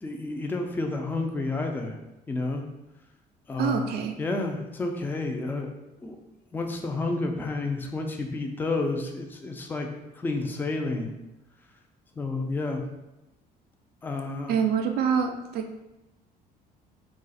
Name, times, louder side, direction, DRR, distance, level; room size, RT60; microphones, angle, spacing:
voice 1, 0.0-2.0 2.3-2.6 3.5-3.9 4.2-5.7 6.0-6.2 6.5-9.9 10.1-11.1 12.2-12.8 14.0-14.6, left 2 dB, 10° left, 3 dB, 0.4 m, -30 dB
voice 2, 3.6-4.1 14.5-15.8, right 7 dB, 70° right, 5 dB, 0.4 m, -26 dB
2.4 x 2.3 x 4.0 m, 0.96 s
cardioid pair, 110°, 17 cm